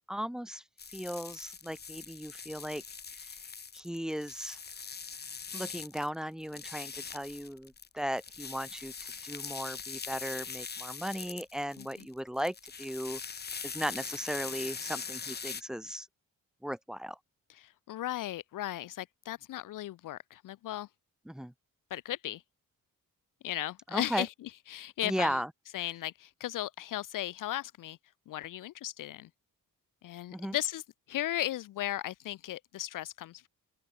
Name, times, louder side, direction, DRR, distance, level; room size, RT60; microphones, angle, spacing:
voice 1, 0.1-0.6 0.9-2.8 3.1-3.4 3.7-4.6 5.5-8.9 9.2-13.2 13.6-16.1 16.6-17.2 21.3-21.5 23.9-24.3 25.0-25.5 30.3-30.6, equal, ahead, 2.8 m, -36 dB
sound 1, 0.8-6.1 6.4-15.6, left 5 dB, 30° left, 2.1 m, -42 dB
voice 2, 17.5-20.9 21.9-22.4 23.4-24.3 24.7-25.4 25.7-28.0 28.3-29.3 30.0-30.8 31.1-33.5, left 13 dB, 70° left, 0.6 m, -36 dB
open air
wide cardioid pair, 180°, 34 cm